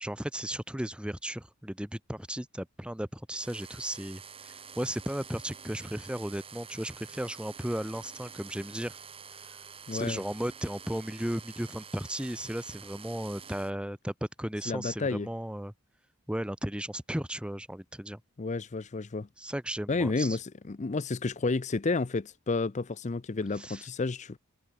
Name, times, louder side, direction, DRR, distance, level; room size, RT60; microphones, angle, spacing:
voice 1, 0.0-9.0 9.9-15.7 16.3-18.2 19.4-20.4 23.6-23.8, right 1 dB, 5° right, 0.9 m, -35 dB
sound 1, 3.3-13.7, right 6 dB, 25° right, 1.8 m, -48 dB
voice 2, 9.9-10.2 14.7-15.3 18.4-19.3 19.9-24.4, left 3 dB, 35° left, 0.5 m, -31 dB
head